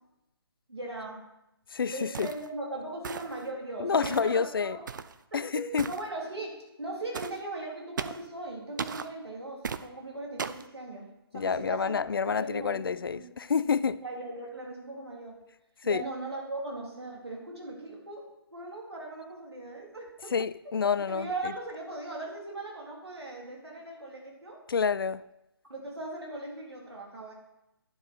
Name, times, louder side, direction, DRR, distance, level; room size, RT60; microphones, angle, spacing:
voice 1, 0.7-1.2 1.9-4.8 5.3-11.9 12.2-12.9 13.1-13.3 14.0-15.4 15.8-20.3 21.1-24.6 25.7-27.3, right 2 dB, 80° right, 3.5 m, -39 dB
voice 2, 1.7-2.3 3.8-4.8 5.3-5.9 11.3-14.0 15.8-16.1 20.3-21.5 24.7-25.3, left 6 dB, 60° left, 0.4 m, -28 dB
sound 1, 2.1-2.5 3.0-3.5 4.0-4.3 4.9-5.2 5.8-6.0 7.1-7.4 8.0-8.3 8.8-9.1 9.6-9.9 10.4-10.7, right 6 dB, 50° right, 0.5 m, -36 dB
11.0 x 7.7 x 4.5 m
figure-of-eight pair, 140°, 13 cm